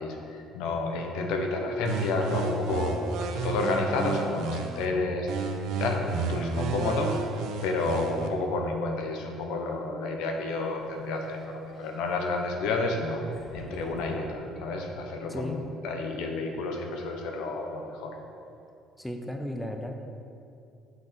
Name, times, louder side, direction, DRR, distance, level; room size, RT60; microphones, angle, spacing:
voice 1, 0.0-18.1, left 2 dB, 85° left, 2 dB, 1.1 m, -30 dB
sound 1, 1.8-4.9 5.3-8.3, right 4 dB, 65° right, 0.7 m, -32 dB
Sliding door, 10.2-14.9, left 1 dB, 20° left, 1.2 m, -50 dB
voice 2, 15.3-15.6 19.0-20.0, left 1 dB, 5° left, 4 dB, 0.5 m, -34 dB
7.6 x 6.0 x 5.4 m, 2.6 s
cardioid pair, 170°, 0 cm